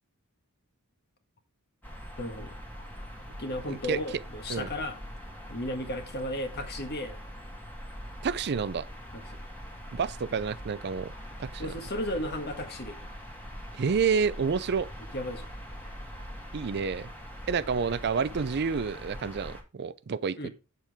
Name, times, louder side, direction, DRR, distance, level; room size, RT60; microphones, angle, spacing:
sound 1, 1.8-19.6, equal, 10° left, 2.0 m, -43 dB
voice 1, 2.2-2.6 3.4-5.0 5.5-7.2 9.1-9.4 11.6-13.0 15.1-15.5 20.4-20.5, left 1 dB, 45° left, 1.7 m, -34 dB
voice 2, 3.7-4.0 4.5-4.7 8.2-8.8 9.9-11.1 11.4-11.7 13.7-14.9 16.5-17.1 17.5-20.5, right 5 dB, 50° right, 0.5 m, -29 dB
8.2 x 7.4 x 3.5 m
head